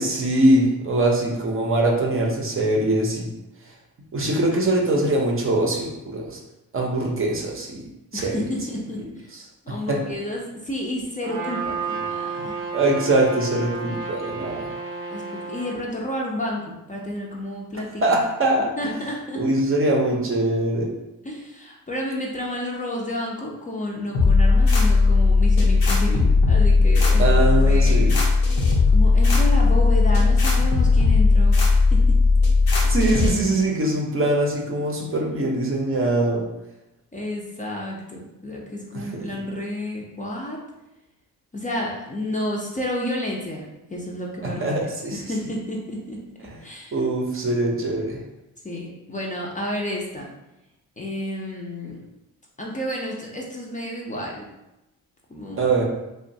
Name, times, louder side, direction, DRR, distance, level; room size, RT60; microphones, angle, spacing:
voice 1, 0.0-3.3 4.1-6.4 6.7-7.8 8.1-8.5 9.9-10.0 12.7-14.7 18.0-18.9 19.4-20.9 27.2-28.2 32.8-36.4 38.9-39.3 44.6-45.2 46.9-48.2 55.6-55.8, right 2 dB, 35° right, 0 dB, 0.6 m, -22 dB
voice 2, 8.1-9.3 9.7-12.5 15.1-18.2 18.8-19.4 21.2-28.1 28.9-31.6 31.9-32.2 37.1-40.6 41.5-44.7 45.1-46.2 46.6-47.0 48.6-50.3 51.0-52.0 52.6-54.5 55.3-55.7, left 1 dB, 20° left, -2 dB, 0.5 m, -31 dB
Trumpet, 11.2-15.8, right 4 dB, 80° right, 0.6 m, -31 dB
sound 1, 24.1-33.3, left 3 dB, 90° left, 0.7 m, -17 dB
2.9 x 2.2 x 2.6 m, 0.94 s
cardioid pair, 85°, 36 cm